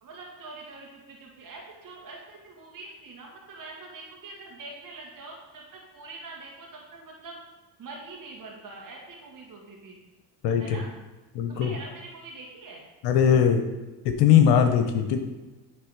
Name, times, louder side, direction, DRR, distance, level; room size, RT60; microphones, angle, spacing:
voice 1, 0.0-7.4 7.8-10.0 10.6-10.9 11.5-12.8, right 3 dB, 45° right, -2 dB, 1.8 m, -44 dB
voice 2, 10.4-10.8 11.3-11.7 13.0-13.6 14.0-15.2, left 8 dB, 65° left, 6 dB, 0.9 m, -20 dB
8.8 x 3.3 x 4.7 m, 1.1 s
hypercardioid pair, 70°, 45 cm